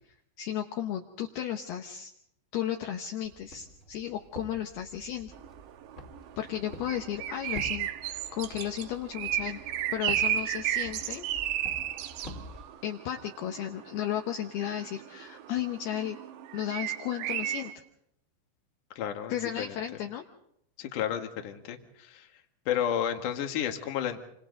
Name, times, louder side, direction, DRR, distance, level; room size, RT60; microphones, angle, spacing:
voice 1, 0.4-2.1 2.5-5.3 6.4-9.6 9.9-11.3 12.8-16.2 16.5-17.7 19.3-20.2, left 10 dB, 75° left, 3 dB, 2.4 m, -34 dB
Walk footsteps, 3.2-12.6, left 1 dB, 25° left, 1.9 m, -47 dB
sound 1, 5.3-17.7, right 11 dB, 75° right, 2.7 m, -34 dB
voice 2, 19.0-19.8 20.8-22.3 22.7-24.2, left 9 dB, 60° left, 5 dB, 2.4 m, -32 dB
28.0 x 26.0 x 4.0 m, 0.75 s
omnidirectional pair, 5.9 m